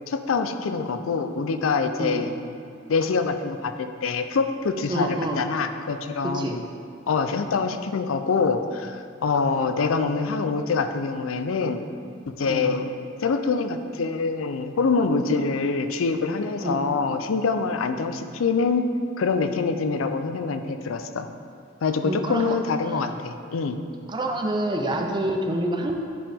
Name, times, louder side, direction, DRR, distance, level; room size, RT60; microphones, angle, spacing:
voice 1, 0.1-2.3 2.9-6.6 7.1-11.8 12.3-12.9 13.2-18.9 19.2-21.3 21.8-23.8, left 4 dB, 85° left, 8 dB, 0.5 m, -25 dB
voice 2, 2.0-2.3 4.9-5.4 6.2-6.6 12.4-12.8 16.6-16.8 22.0-22.6 22.8-23.1 24.1-26.0, right 1 dB, 25° right, 2 dB, 0.6 m, -27 dB
10.0 x 5.0 x 3.5 m, 2.3 s
head